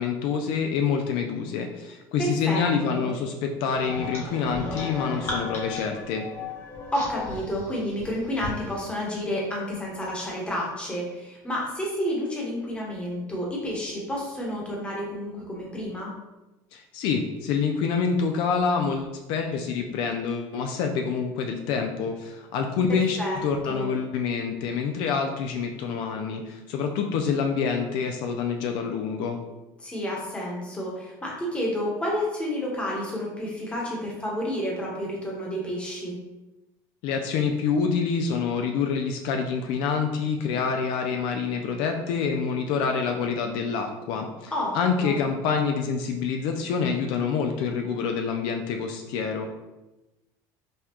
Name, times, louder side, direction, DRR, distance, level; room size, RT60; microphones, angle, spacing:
voice 1, 0.0-6.2 16.7-29.4 37.0-49.5, left 5 dB, 65° left, 4 dB, 0.4 m, -27 dB
voice 2, 2.2-2.6 2.9-3.1 6.9-16.1 22.9-23.4 23.7-23.9 29.8-36.2 44.5-45.2, equal, 10° left, -3 dB, 1.1 m, -30 dB
sound 1, 3.7-8.6, left 3 dB, 30° left, 1.2 m, -35 dB
5.3 x 2.3 x 2.9 m, 1.0 s
cardioid pair, 140°, 9 cm